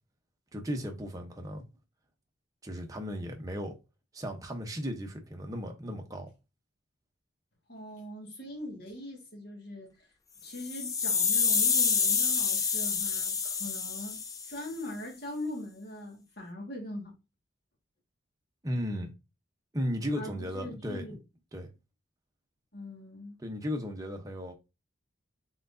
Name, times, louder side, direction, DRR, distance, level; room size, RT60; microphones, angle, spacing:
voice 1, 0.5-1.6 2.6-3.8 4.1-6.3 18.6-19.1 19.7-21.2 21.5-21.7 23.4-24.5, equal, 15° right, 0.7 m, -35 dB
voice 2, 7.7-10.1 10.4-14.2 14.5-17.1 20.2-21.2 22.7-23.4, left 1 dB, 50° left, 1.7 m, -41 dB
sound 1, 10.5-14.7, left 6 dB, 15° left, 0.3 m, -28 dB
4.3 x 3.9 x 2.6 m
head